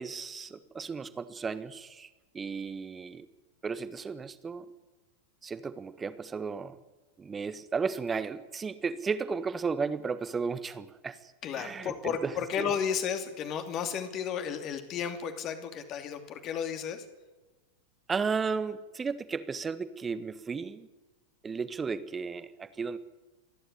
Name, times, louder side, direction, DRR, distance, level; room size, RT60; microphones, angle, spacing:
voice 1, 0.0-2.1 2.3-3.3 3.6-4.7 5.4-6.8 7.2-12.3 12.6-12.7 18.1-20.9 21.4-23.0, right 5 dB, 15° right, 13 dB, 1.4 m, -34 dB
voice 2, 11.4-17.0, left 7 dB, 35° left, 8 dB, 2.7 m, -33 dB
28.0 x 11.5 x 9.9 m, 1.2 s
figure-of-eight pair, 90°, 0 cm